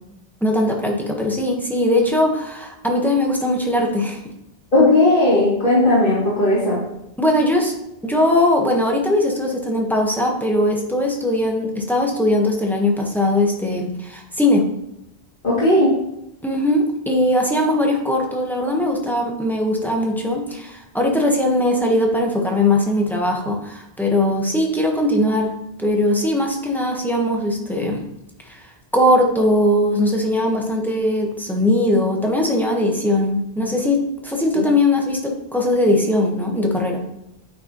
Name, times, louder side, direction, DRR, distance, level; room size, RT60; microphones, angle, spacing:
voice 1, 0.4-4.2 7.2-7.7 8.0-14.6 16.4-25.5 25.8-28.0 28.5-28.6 28.9-37.0, left 1 dB, ahead, 0 dB, 1.1 m, -20 dB
voice 2, 4.7-6.8 15.4-15.9 34.5-34.7, left 1 dB, 55° left, -10 dB, 2.7 m, -16 dB
9.1 x 5.4 x 3.0 m, 0.86 s
omnidirectional pair, 1.1 m